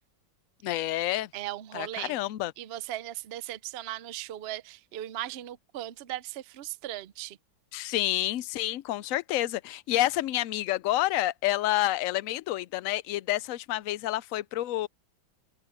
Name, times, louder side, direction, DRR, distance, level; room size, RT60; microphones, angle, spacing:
voice 1, 0.6-1.3 1.7-2.5 7.7-14.9, left 15 dB, 75° left, 0.7 m, -29 dB
voice 2, 1.3-2.2 2.6-7.4, right 14 dB, 90° right, 0.5 m, -38 dB
open air
omnidirectional pair, 1.9 m